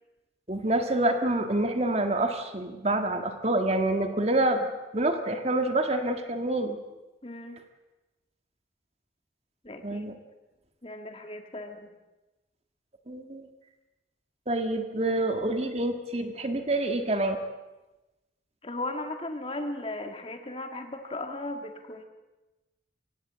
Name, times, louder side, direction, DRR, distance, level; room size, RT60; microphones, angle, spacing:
voice 1, 0.5-4.7 4.9-6.8 9.8-10.1 13.1-13.5 14.5-17.4, right 1 dB, 35° right, 6 dB, 1.6 m, -27 dB
voice 2, 7.2-7.6 9.6-10.1 10.8-11.9 18.6-22.0, left 2 dB, 30° left, 5 dB, 1.8 m, -36 dB
23.5 x 17.0 x 7.4 m, 1.1 s
head